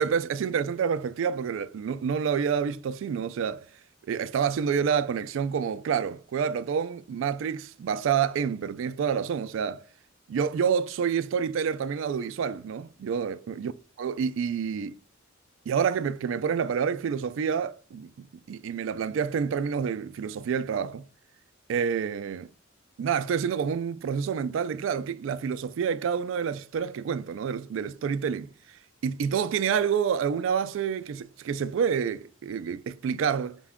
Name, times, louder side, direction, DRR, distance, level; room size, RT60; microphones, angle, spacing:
voice 1, 0.0-3.7 4.1-9.9 10.3-13.7 14.0-15.0 15.7-21.1 21.7-22.5 23.0-33.6, right 7 dB, 70° right, 0.3 m, -28 dB
5.8 x 2.2 x 3.5 m
head